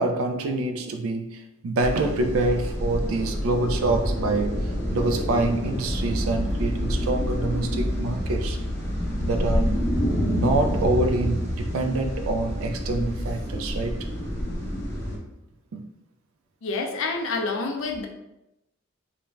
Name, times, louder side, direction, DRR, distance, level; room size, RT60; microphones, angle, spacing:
voice 1, 0.0-4.6 4.9-8.6 9.2-9.7 10.2-14.1 15.7-15.9, right 2 dB, 80° right, 6 dB, 0.4 m, -26 dB
sound 1, 1.8-15.2, equal, 15° left, 0.5 m, -27 dB
voice 2, 16.6-18.1, left 3 dB, 65° left, 3 dB, 0.4 m, -28 dB
2.5 x 2.2 x 3.1 m, 0.90 s
head